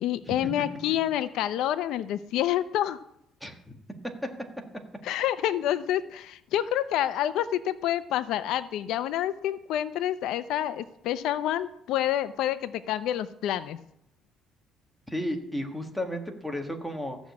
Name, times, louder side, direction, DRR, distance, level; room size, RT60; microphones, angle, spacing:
voice 1, 0.0-3.0 5.0-13.8, left 12 dB, 75° left, 13 dB, 0.6 m, -28 dB
voice 2, 3.4-3.8 15.1-17.2, equal, ahead, 3 dB, 1.6 m, -33 dB
14.5 x 6.2 x 8.4 m, 0.75 s
cardioid pair, 145°, 0 cm